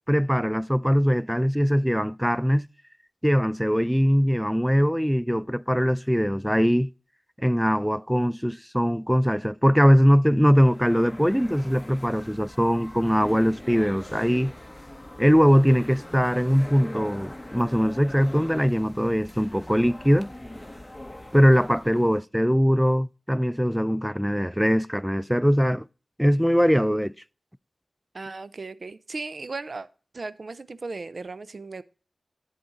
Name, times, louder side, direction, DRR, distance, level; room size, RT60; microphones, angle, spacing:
voice 1, 0.1-2.7 3.2-6.9 7.4-14.5 15.2-20.3 21.3-25.9 26.2-27.1, equal, ahead, 0.3 m, -21 dB
sound 1, 10.6-22.2, left 1 dB, 15° left, 1.3 m, -42 dB
voice 2, 28.1-29.9 30.1-31.8, right 3 dB, 60° right, 0.5 m, -36 dB
8.5 x 7.8 x 3.8 m
cardioid pair, 40°, 0 cm